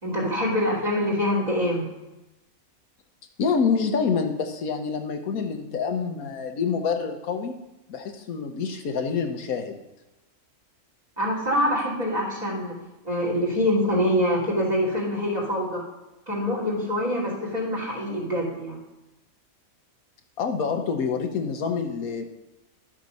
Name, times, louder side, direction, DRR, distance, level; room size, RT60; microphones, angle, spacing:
voice 1, 0.0-1.9 11.2-12.7 13.0-15.8 16.3-18.8, equal, 25° right, -4 dB, 3.2 m, -25 dB
voice 2, 3.4-7.6 7.9-9.8 20.4-22.2, left 5 dB, 75° left, 5 dB, 1.4 m, -27 dB
11.5 x 7.6 x 5.3 m, 1.0 s
omnidirectional pair, 1.5 m